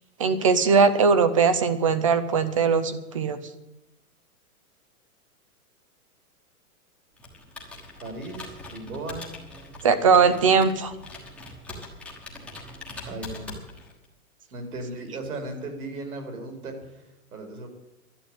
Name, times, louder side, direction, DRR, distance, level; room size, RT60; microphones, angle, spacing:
voice 1, 0.2-3.4 9.8-10.9, right 5 dB, 25° right, 12 dB, 0.5 m, -20 dB
Computer keyboard, 7.2-14.0, left 2 dB, 5° left, 1.3 m, -42 dB
voice 2, 8.0-9.3 13.1-13.5 14.5-17.7, right 2 dB, 80° right, 5 dB, 4.6 m, -36 dB
11.5 x 10.0 x 8.9 m, 0.96 s
hypercardioid pair, 170°, 43 cm